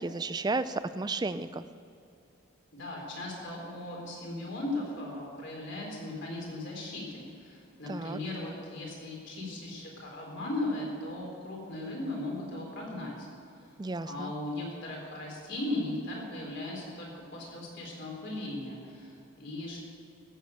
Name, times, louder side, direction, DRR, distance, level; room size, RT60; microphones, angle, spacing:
voice 1, 0.0-1.6 7.9-8.2 13.8-14.3, right 3 dB, 20° right, 13 dB, 0.4 m, -33 dB
voice 2, 2.7-13.6 14.1-19.8, left 1 dB, 55° left, -2 dB, 3.9 m, -37 dB
15.0 x 7.7 x 8.2 m, 2.5 s
head